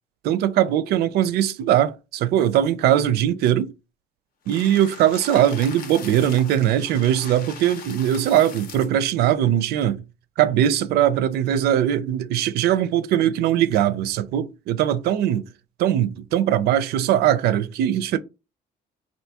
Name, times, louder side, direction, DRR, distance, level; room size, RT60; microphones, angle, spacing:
voice 1, 0.2-3.7 4.5-10.0 10.4-15.5 15.8-18.2, right 11 dB, 70° right, 0.4 m, -20 dB
sound 1, 4.5-9.0, left 6 dB, 60° left, 0.7 m, -40 dB
3.3 x 2.6 x 2.7 m
cardioid pair, 110°, 17 cm